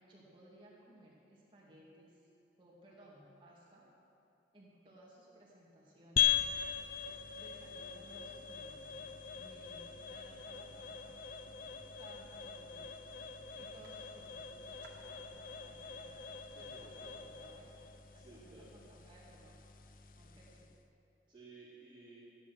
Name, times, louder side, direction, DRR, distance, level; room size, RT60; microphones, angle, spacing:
voice 1, 0.0-2.3 2.6-3.9 4.5-6.4 7.4-11.2 12.0-12.9 13.5-17.7 18.1-19.6 20.2-20.7, right 1 dB, 25° right, -5 dB, 2.6 m, -60 dB
sound 1, 6.2-20.8, left 9 dB, 50° left, 0.5 m, -40 dB
sound 2, 11.0-17.1, right 2 dB, 70° right, 2.3 m, -66 dB
voice 2, 16.5-16.9 18.1-18.8 21.3-22.2, right 3 dB, 10° right, -14 dB, 3.9 m, -56 dB
14.0 x 10.5 x 6.5 m, 2.8 s
head